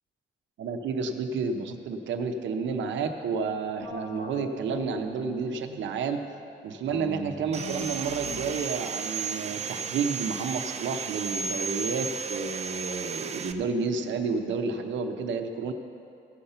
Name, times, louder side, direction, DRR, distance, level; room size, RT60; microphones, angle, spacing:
voice 1, 0.6-6.2 6.6-15.7, right 5 dB, 85° right, 5 dB, 0.9 m, -30 dB
sound 1, 3.8-6.1 6.8-10.2, left 3 dB, 75° left, 1.3 m, -42 dB
Sawing, 7.5-13.5, right 5 dB, 35° right, 0.5 m, -34 dB
16.0 x 5.7 x 6.8 m, 2.6 s
wide cardioid pair, 165°, 19 cm